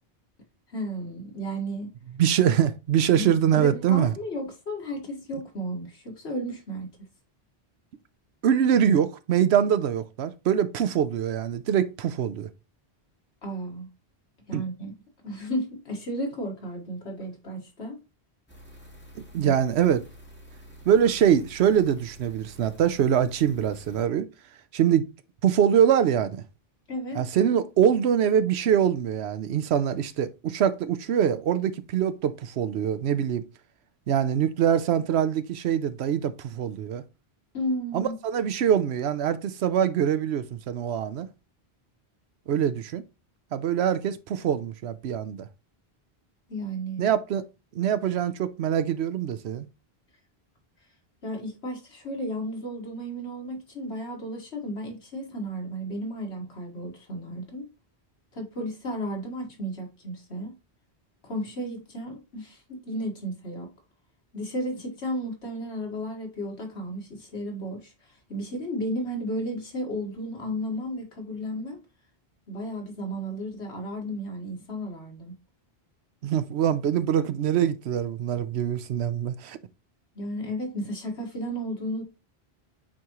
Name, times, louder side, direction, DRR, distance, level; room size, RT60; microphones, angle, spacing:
voice 1, 0.7-1.9 3.1-6.9 13.4-13.9 14.5-14.9 15.2-18.0 19.4-19.5 26.9-27.2 37.5-38.2 46.5-47.1 51.2-57.7 58.3-60.5 61.2-63.7 64.3-67.9 68.3-71.8 72.5-75.3 80.2-82.0, equal, 85° left, 2.0 m, -33 dB
voice 2, 2.2-4.1 8.4-12.5 14.5-14.6 19.3-20.0 20.9-24.3 24.7-25.1 25.4-26.4 27.2-33.5 34.1-37.0 37.9-41.3 42.5-43.0 43.5-45.5 47.0-47.5 47.7-49.7 76.2-79.6, right 9 dB, 80° right, 0.9 m, -24 dB
sound 1, 18.5-24.1, right 1 dB, 10° left, 2.1 m, -48 dB
8.6 x 3.7 x 3.0 m
omnidirectional pair, 1.1 m